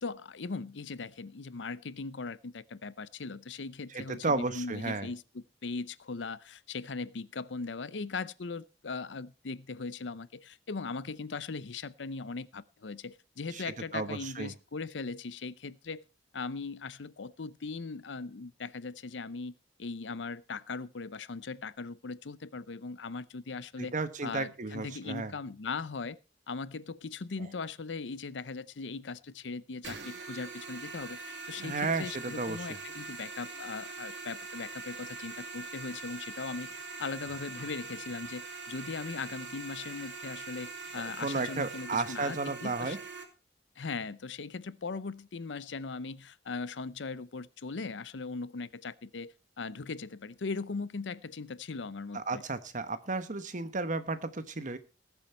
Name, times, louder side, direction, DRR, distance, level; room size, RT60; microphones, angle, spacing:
voice 1, 0.0-16.0 16.3-19.5 19.8-23.9 24.2-26.2 26.5-36.7 37.0-43.0 43.8-52.4, left 4 dB, 75° left, 0.7 m, -39 dB
voice 2, 3.9-5.1 13.5-13.6 13.9-14.5 23.8-25.3 31.6-32.6 41.2-43.0 52.1-54.8, right 3 dB, 45° right, 1.2 m, -33 dB
sound 1, 29.8-43.2, right 4 dB, 80° right, 2.8 m, -43 dB
19.5 x 7.3 x 4.5 m
head